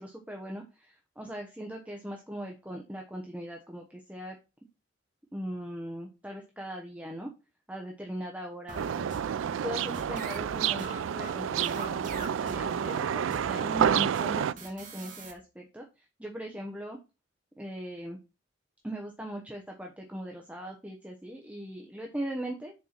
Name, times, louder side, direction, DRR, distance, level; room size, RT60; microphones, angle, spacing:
voice 1, 0.0-4.4 5.3-7.3 7.7-9.3 9.6-10.9 11.1-17.0 17.6-18.2 18.8-22.7, equal, 5° right, 1 dB, 0.9 m, -39 dB
sound 1, 8.7-15.3, right 2 dB, 40° right, 1.8 m, -44 dB
sound 2, 8.7-14.5, right 8 dB, 80° right, 0.3 m, -29 dB
6.4 x 4.6 x 5.9 m, 0.29 s
head